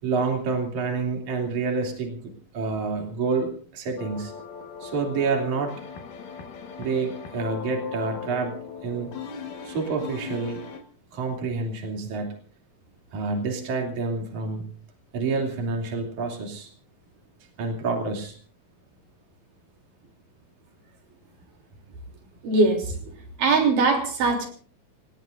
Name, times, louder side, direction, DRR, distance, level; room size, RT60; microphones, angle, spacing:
voice 1, 0.0-2.2 2.5-4.3 4.8-5.7 6.8-8.5 8.8-9.1 9.6-10.6 11.1-12.3 13.1-14.6 15.1-16.7 17.6-18.4, right 4 dB, 65° right, 2 dB, 4.3 m, -28 dB
sound 1, 4.0-10.8, left 6 dB, 80° left, 3.2 m, -38 dB
voice 2, 22.4-23.1 23.4-24.5, right 3 dB, 85° right, 3 dB, 5.0 m, -21 dB
28.5 x 19.0 x 2.6 m, 0.43 s
omnidirectional pair, 3.7 m